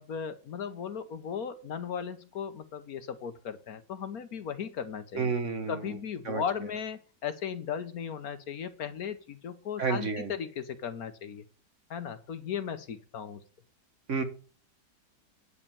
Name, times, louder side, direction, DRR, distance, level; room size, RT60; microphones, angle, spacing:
voice 1, 0.0-5.3 5.7-11.4 11.9-13.4, left 7 dB, 60° left, 11 dB, 1.3 m, -36 dB
voice 2, 5.1-5.8 6.2-6.4 9.8-10.3 14.1-14.2, right 5 dB, 50° right, 8 dB, 1.4 m, -30 dB
9.7 x 5.5 x 6.9 m, 0.38 s
omnidirectional pair, 1.9 m